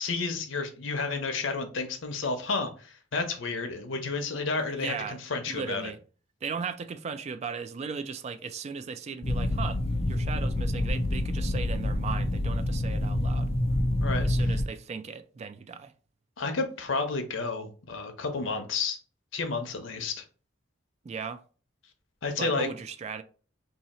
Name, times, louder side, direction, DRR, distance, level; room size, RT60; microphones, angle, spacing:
voice 1, 0.0-5.9 14.0-14.3 16.4-19.0 19.3-20.2 22.2-22.7, left 4 dB, 85° left, 0.7 m, -31 dB
voice 2, 4.7-5.2 5.5-6.0 6.4-13.5 14.2-15.9 21.0-21.4 22.4-23.2, right 5 dB, 35° right, 0.3 m, -37 dB
sound 1, 9.2-14.6, left 1 dB, 30° left, 0.4 m, -27 dB
2.8 x 2.7 x 4.1 m
head